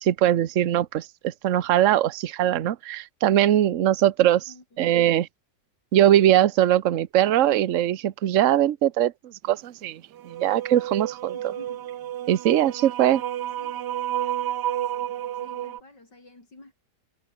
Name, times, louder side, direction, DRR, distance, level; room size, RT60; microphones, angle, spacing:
voice 1, 0.0-4.5 4.8-5.3 5.9-11.3 12.3-13.2, right 12 dB, 55° right, 1.1 m, -21 dB
voice 2, 4.5-4.9 11.3-11.9 13.6-13.9 15.4-16.7, left 2 dB, 85° left, 7.2 m, -49 dB
sound 1, 10.1-15.8, right 12 dB, 75° right, 1.5 m, -31 dB
omnidirectional pair, 1.8 m